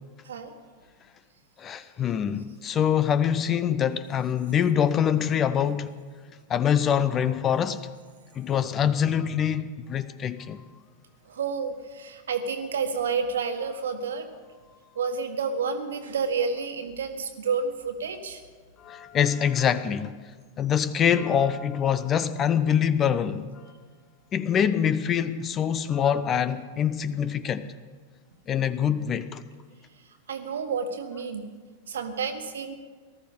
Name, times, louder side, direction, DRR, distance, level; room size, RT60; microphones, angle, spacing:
voice 1, 1.6-5.9 6.5-7.8 8.4-10.6 18.8-20.2 20.6-23.5 24.3-27.7 28.5-29.4, left 8 dB, 25° left, 0.7 m, -24 dB
voice 2, 11.3-14.3 14.9-18.4 30.3-31.4 31.9-32.7, right 5 dB, 65° right, 1.6 m, -30 dB
19.0 x 13.5 x 5.4 m
figure-of-eight pair, 90°, 0 cm